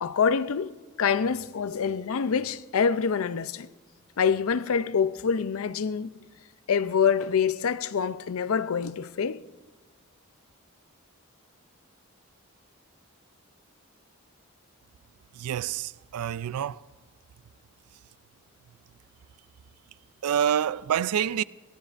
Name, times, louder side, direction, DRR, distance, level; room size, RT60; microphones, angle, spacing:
voice 1, 0.0-3.7 4.2-6.2 6.7-9.4, left 6 dB, 70° left, 0.5 m, -26 dB
voice 2, 15.4-16.8 20.2-21.4, right 9 dB, 85° right, 0.4 m, -27 dB
22.0 x 15.5 x 2.5 m
head